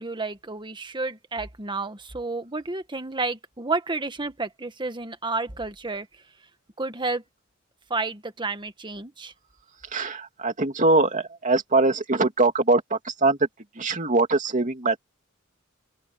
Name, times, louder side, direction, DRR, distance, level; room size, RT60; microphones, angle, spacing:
voice 1, 0.0-6.1 6.8-7.2 7.9-9.3, right 3 dB, 25° right, 1.5 m, -31 dB
voice 2, 9.9-13.4 13.8-15.0, right 3 dB, 40° right, 2.6 m, -22 dB
open air
head